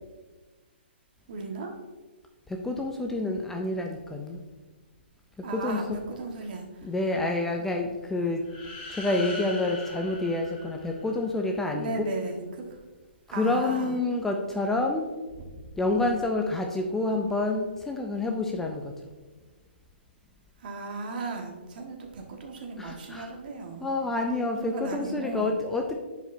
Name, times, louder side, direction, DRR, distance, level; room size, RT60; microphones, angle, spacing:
voice 1, 1.3-1.7 5.4-6.9 11.7-12.6 13.3-14.0 20.6-24.0 24.6-25.5, right 3 dB, 50° right, 2 dB, 1.4 m, -36 dB
voice 2, 2.5-4.4 5.5-5.8 6.8-8.4 8.9-11.9 13.3-15.1 15.8-18.9 22.8-23.3 23.8-26.0, left 2 dB, 5° left, 2 dB, 0.4 m, -28 dB
sound 1, 8.4-11.4, left 2 dB, 30° left, 2.1 m, -41 dB
10.5 x 5.0 x 2.6 m, 1.3 s
hypercardioid pair, 150°, 6 cm